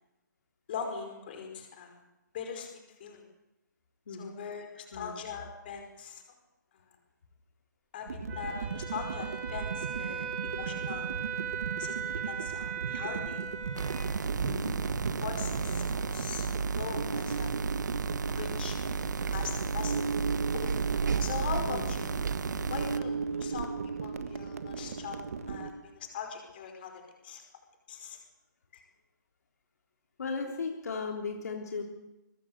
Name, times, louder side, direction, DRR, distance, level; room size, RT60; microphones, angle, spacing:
voice 1, 0.7-2.0 2.3-3.2 4.1-6.2 6.7-6.8 7.9-11.1 11.8-13.4 13.8-13.9 14.9-17.5 18.4-20.0 20.5-20.7 21.2-22.1 22.7-25.2 25.5-27.4 27.9-28.2 28.7-28.8, left 6 dB, 30° left, 4 dB, 5.1 m, -41 dB
voice 2, 4.1-4.4 4.9-5.1 14.4-14.8 21.6-21.9 30.2-31.8, left 4 dB, 55° left, 2 dB, 3.6 m, -36 dB
sound 1, 8.1-25.7, right 5 dB, 50° right, 1.7 m, -37 dB
Wind instrument woodwind instrument, 8.3-14.0, right 7 dB, 10° right, 5.2 m, -38 dB
sound 2, 13.7-23.0, right 5 dB, 65° right, 1.3 m, -33 dB
23.0 x 20.0 x 8.1 m, 0.96 s
hypercardioid pair, 170°, 10 cm